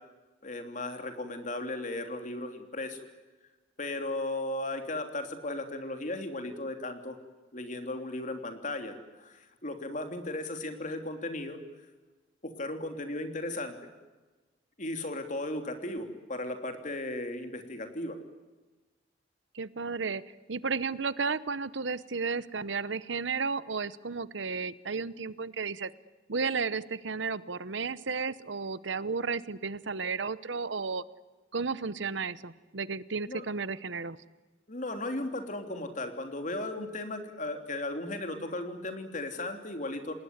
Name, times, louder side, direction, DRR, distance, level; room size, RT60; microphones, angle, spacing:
voice 1, 0.4-3.0 3.8-7.2 7.5-11.6 12.4-13.8 14.8-18.2 33.2-33.4 34.7-40.1, left 2 dB, 40° left, 6 dB, 3.3 m, -36 dB
voice 2, 19.5-20.2 20.5-25.9 26.3-31.0 31.5-34.2, right 4 dB, 75° right, 17 dB, 0.9 m, -33 dB
28.5 x 19.5 x 9.6 m, 1.2 s
head